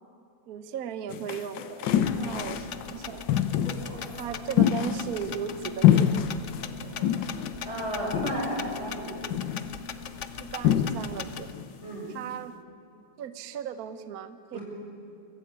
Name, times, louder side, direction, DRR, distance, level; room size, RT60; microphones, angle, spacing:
voice 1, 0.5-1.6 2.1-3.3 4.2-6.2 10.4-11.5 12.1-12.5 13.2-14.6, right 8 dB, 60° right, 11 dB, 1.2 m, -36 dB
sound 1, 1.1-2.8 3.3-3.9 4.6-5.6 5.8-6.6 7.0-7.6 8.1-8.6 9.3-9.7 10.6-11.3 11.5-11.7, left 10 dB, 75° left, 1.5 m, -25 dB
sound 2, 1.6-7.3, right 1 dB, 80° right, 4.7 m, -48 dB
sound 3, 2.1-11.5, left 6 dB, 55° left, 0.9 m, -40 dB
voice 2, 7.6-9.3 11.8-12.1 14.5-14.6, right 1 dB, 35° right, -3 dB, 6.1 m, -32 dB
23.5 x 14.0 x 8.8 m, 2.7 s
omnidirectional pair, 2.0 m